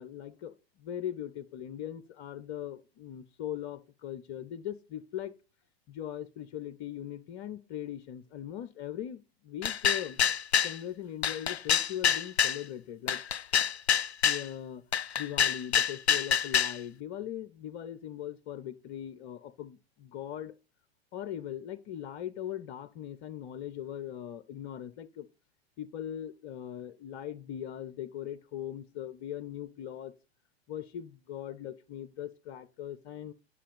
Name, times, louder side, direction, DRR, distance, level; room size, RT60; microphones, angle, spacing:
voice 1, 0.0-5.3 5.9-10.2 10.6-13.2 14.2-14.8 15.2-20.5 21.1-25.3 25.8-30.1 30.7-33.3, left 10 dB, 35° left, 0.7 m, -40 dB
sound 1, 9.6-10.8 11.2-12.6 13.1-14.4 14.9-16.8, left 8 dB, 80° left, 0.5 m, -26 dB
10.0 x 6.3 x 5.1 m
figure-of-eight pair, 100°, 32 cm